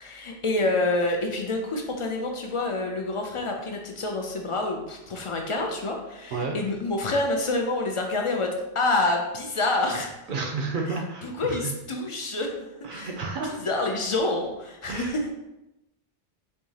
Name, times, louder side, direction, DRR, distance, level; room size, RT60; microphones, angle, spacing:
voice 1, 0.0-10.2 10.9-11.0 11.2-15.3, left 2 dB, 55° left, 2 dB, 0.3 m, -28 dB
voice 2, 10.3-11.7 12.8-13.6 14.9-15.3, right 4 dB, 60° right, 2 dB, 0.6 m, -31 dB
4.5 x 2.7 x 2.7 m, 0.93 s
omnidirectional pair, 1.1 m